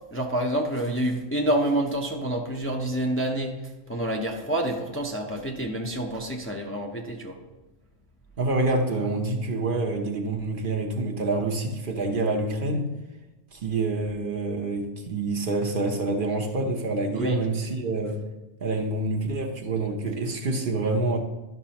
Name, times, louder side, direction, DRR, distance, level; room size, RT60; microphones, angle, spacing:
voice 1, 0.1-7.4 17.1-17.4, right 1 dB, 15° left, 0.6 m, -28 dB
voice 2, 8.4-12.9 13.5-18.2 18.6-21.2, right 2 dB, 55° right, 1.0 m, -27 dB
12.0 x 6.0 x 2.9 m
omnidirectional pair, 1.1 m